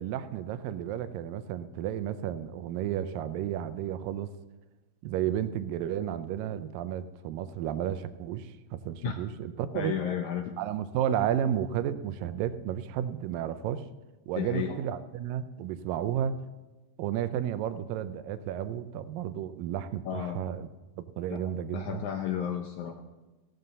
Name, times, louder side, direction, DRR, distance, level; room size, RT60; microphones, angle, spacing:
voice 1, 0.0-4.3 5.0-10.0 10.6-13.9 14.3-16.4 17.0-20.7 21.2-22.1, right 10 dB, 75° right, 12 dB, 2.3 m, -32 dB
voice 2, 9.7-10.5 14.4-14.8 20.1-20.4 21.3-21.4 21.7-22.9, left 9 dB, 75° left, 4 dB, 1.8 m, -32 dB
16.0 x 13.0 x 4.1 m, 1.1 s
omnidirectional pair, 4.3 m